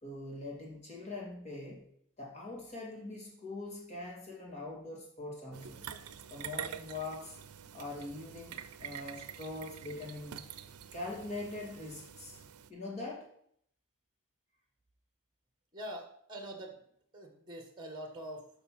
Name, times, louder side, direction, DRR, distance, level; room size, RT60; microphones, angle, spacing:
voice 1, 0.0-1.9 2.2-5.9 6.3-7.4 7.7-10.4 10.9-12.4 12.7-13.3, left 2 dB, 30° left, -2 dB, 2.3 m, -43 dB
sound 1, 5.5-12.7, right 8 dB, 90° right, 0.6 m, -46 dB
voice 2, 15.7-16.8 17.1-18.5, right 1 dB, 20° right, 4 dB, 1.3 m, -44 dB
6.8 x 5.7 x 5.9 m, 0.66 s
head